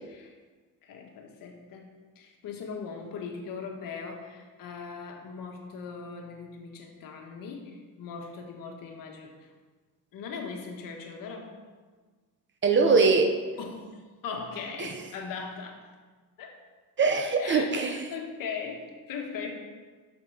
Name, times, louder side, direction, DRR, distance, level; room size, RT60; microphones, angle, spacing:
voice 1, 0.8-1.9 2.1-9.5 10.1-11.5 13.6-15.8 16.4-16.6 17.4-19.5, left 5 dB, 60° left, 2 dB, 1.5 m, -39 dB
voice 2, 12.6-13.3 14.8-14.9 17.0-18.1, right 4 dB, 30° right, 4 dB, 0.7 m, -22 dB
7.7 x 6.6 x 4.9 m, 1.4 s
cardioid pair, 135°, 37 cm